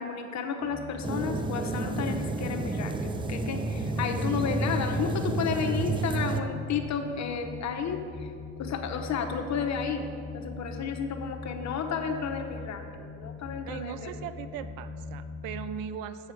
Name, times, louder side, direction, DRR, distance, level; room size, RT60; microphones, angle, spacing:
voice 1, 0.0-8.0 8.6-10.1 10.3-14.1, left 6 dB, 50° left, 4 dB, 0.9 m, -32 dB
sound 1, 0.6-15.8, left 4 dB, ahead, 0.9 m, -41 dB
sound 2, 1.0-6.4, right 3 dB, 15° right, 0.3 m, -30 dB
voice 2, 13.6-16.3, right 9 dB, 75° right, 12 dB, 0.5 m, -39 dB
7.8 x 4.5 x 5.8 m, 2.3 s
supercardioid pair, 80°, 36 cm